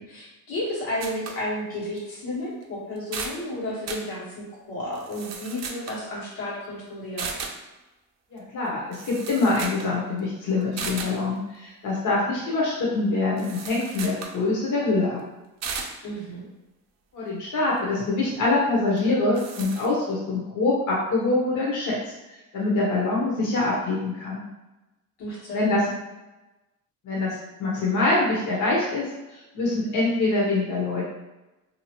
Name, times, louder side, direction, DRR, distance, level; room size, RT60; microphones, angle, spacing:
voice 1, 0.0-7.3 16.0-16.4 25.2-25.8, left 1 dB, 85° left, -7 dB, 1.4 m, -32 dB
sound 1, 1.0-1.4 2.0-2.1 2.6-2.7 3.0-3.4 3.9-4.1 4.9-6.0 7.2-7.6 8.7-8.8 8.9-9.9 10.2-10.3 10.8-11.2 13.4-14.4 15.6-16.0 19.0-19.1 19.3-19.9, right 5 dB, 50° right, 0.5 m, -35 dB
voice 2, 8.3-15.2 17.1-22.0 22.5-24.4 25.5-25.9 27.0-31.0, left 2 dB, 55° left, -5 dB, 0.9 m, -24 dB
2.7 x 2.5 x 2.9 m, 1.0 s
cardioid pair, 95°, 36 cm